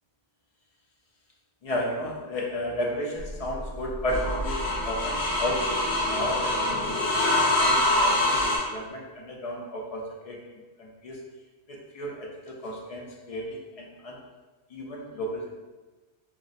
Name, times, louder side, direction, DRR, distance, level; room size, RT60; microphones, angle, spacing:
voice 1, 1.6-10.4 10.8-11.2 11.7-14.2 14.7-15.5, left 1 dB, 50° left, -1 dB, 0.4 m, -33 dB
sound 1, 3.2-8.6, left 1 dB, 85° left, 1.1 m, -25 dB
2.5 x 2.1 x 3.9 m, 1.2 s
omnidirectional pair, 1.1 m